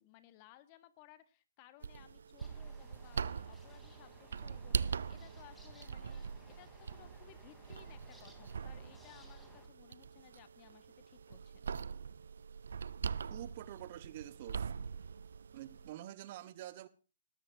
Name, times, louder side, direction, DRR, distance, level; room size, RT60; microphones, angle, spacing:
voice 1, 0.0-11.6, left 13 dB, 35° left, 1.5 m, -61 dB
sound 1, 1.8-15.9, right 6 dB, 70° right, 0.5 m, -42 dB
sound 2, 2.4-9.7, left 1 dB, 5° left, 3.3 m, -60 dB
voice 2, 13.3-14.7 15.5-16.9, right 13 dB, 45° right, 1.2 m, -47 dB
20.5 x 13.5 x 2.7 m
hypercardioid pair, 140°, 0 cm